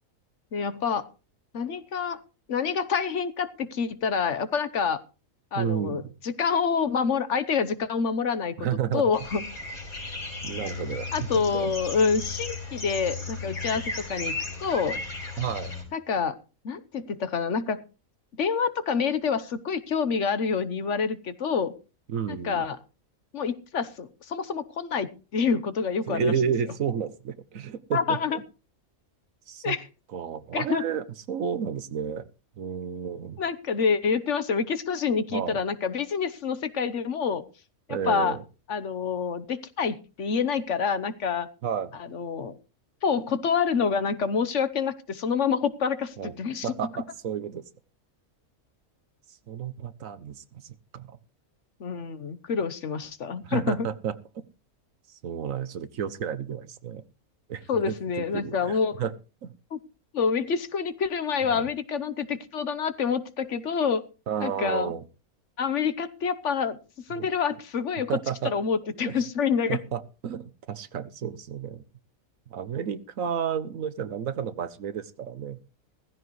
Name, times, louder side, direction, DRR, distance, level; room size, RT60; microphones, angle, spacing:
voice 1, 0.5-1.1 1.5-2.2 2.5-5.0 5.5-8.7 8.9-9.4 11.1-15.0 15.9-16.4 16.6-17.8 18.4-21.7 22.3-22.8 23.3-26.3 27.9-28.4 29.6-29.8 30.5-30.8 33.4-37.4 37.9-38.4 38.7-41.5 41.9-42.5 43.0-46.7 51.8-53.9 57.7-59.0 59.7-59.8 60.1-64.0 64.4-64.9 65.6-66.8 67.1-68.1 68.4-69.8, left 6 dB, 60° left, 13 dB, 1.2 m, -27 dB
voice 2, 5.5-6.1 8.6-9.0 10.4-11.7 15.4-15.7 22.1-22.6 26.1-28.4 29.5-29.8 30.1-32.3 32.6-33.4 35.3-35.6 37.9-38.4 41.6-41.9 46.2-46.3 46.6-47.6 49.5-51.2 53.4-54.4 55.1-57.0 57.5-59.1 59.4-59.5 61.4-61.7 64.3-65.0 67.1-67.3 68.1-68.5 69.0-69.2 69.7-71.8 72.5-75.6, right 8 dB, 70° right, 14 dB, 1.3 m, -31 dB
sound 1, 9.1-15.8, left 3 dB, 85° left, 5.3 m, -35 dB
16.0 x 15.5 x 3.1 m, 0.33 s
omnidirectional pair, 1.5 m